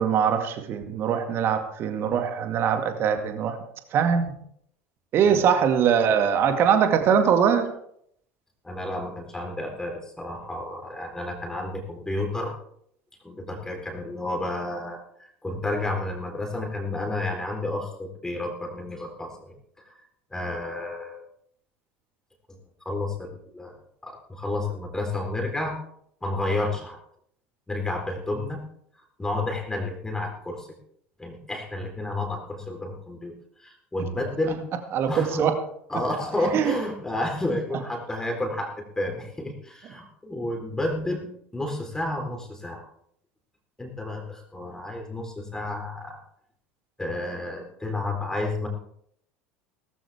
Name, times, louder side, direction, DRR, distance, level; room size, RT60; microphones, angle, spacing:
voice 1, 0.0-3.6 3.9-4.3 5.1-7.7 34.9-35.5 36.5-36.8, right 7 dB, 40° right, 6 dB, 2.1 m, -22 dB
voice 2, 8.6-12.5 13.2-19.6 19.8-19.9 20.3-21.2 22.5-22.6 22.9-23.8 24.0-25.8 26.2-27.0 27.7-28.6 29.2-30.7 31.2-34.6 35.1-35.5 35.9-42.8 43.8-46.2 47.0-48.7, left 2 dB, 10° left, 1 dB, 3.9 m, -31 dB
18.0 x 15.0 x 3.5 m, 0.69 s
figure-of-eight pair, 70°, 6 cm